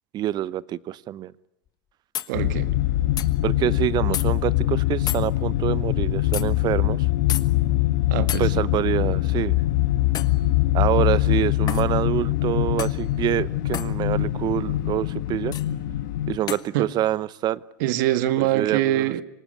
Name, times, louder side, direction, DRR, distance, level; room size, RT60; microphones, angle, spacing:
voice 1, 0.1-1.3 3.4-7.1 8.4-9.6 10.7-15.5 16.3-17.6 18.4-19.1, right 13 dB, 40° right, 0.9 m, -26 dB
sound 1, 1.7-1.8 2.1-2.3 3.2-3.3 4.1-4.3 5.1-5.3 6.3-6.5 7.3-7.5 8.3-8.5 10.1-10.4 11.7-11.9 12.8-13.0 13.7-13.9 15.5-15.7 16.5-16.7, left 11 dB, 35° left, 1.4 m, -30 dB
sound 2, 2.3-16.4, left 15 dB, 70° left, 1.3 m, -23 dB
voice 2, 2.3-2.7 8.1-8.6 16.7-16.9 17.8-19.2, right 13 dB, 65° right, 1.7 m, -24 dB
26.0 x 19.0 x 9.9 m
hypercardioid pair, 100°, 11 cm